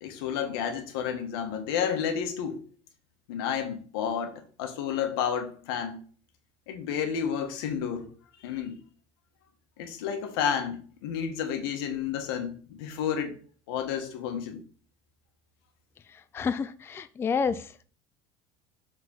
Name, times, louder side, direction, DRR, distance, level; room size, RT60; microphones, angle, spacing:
voice 1, 0.0-2.6 3.3-6.0 6.7-8.1 8.4-8.8 9.8-13.4 13.7-14.6, left 8 dB, 90° left, 1.4 m, -31 dB
voice 2, 16.1-17.7, left 5 dB, 20° left, 0.4 m, -30 dB
7.3 x 4.0 x 5.4 m
supercardioid pair, 125°, 12 cm